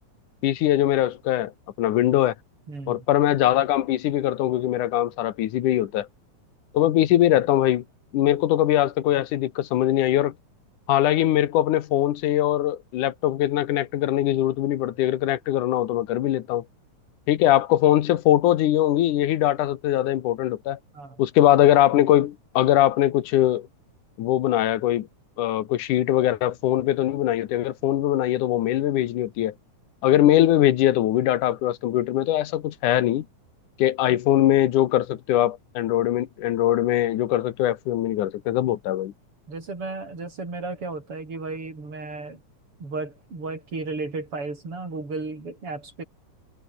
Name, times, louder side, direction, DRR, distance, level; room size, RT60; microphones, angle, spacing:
voice 1, 0.4-1.5 1.8-2.3 2.9-6.1 6.7-7.8 8.1-10.3 10.9-16.6 17.3-20.8 21.2-23.7 24.2-25.1 25.4-29.5 30.0-33.3 33.8-39.1, left 13 dB, 90° left, 2.7 m, -21 dB
voice 2, 2.7-3.1 8.3-8.4 20.9-21.2 34.1-34.2 39.5-42.4 42.8-46.0, right 3 dB, 45° right, 7.5 m, -34 dB
omnidirectional pair, 3.5 m